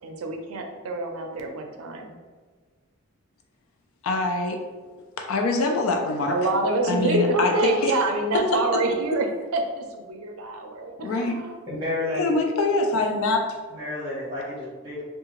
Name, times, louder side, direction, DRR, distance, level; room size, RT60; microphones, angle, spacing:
voice 1, 0.0-2.1 6.3-9.3 9.5-11.6, right 2 dB, 85° right, 3 dB, 0.4 m, -26 dB
voice 2, 4.0-4.6 5.2-6.4 6.9-7.9 8.5-8.6 11.0-11.4 12.2-13.6, left 3 dB, 80° left, 4 dB, 0.4 m, -24 dB
voice 3, 11.7-12.3 13.7-15.0, left 2 dB, 20° right, -6 dB, 0.8 m, -30 dB
2.7 x 2.3 x 2.9 m, 1.4 s
head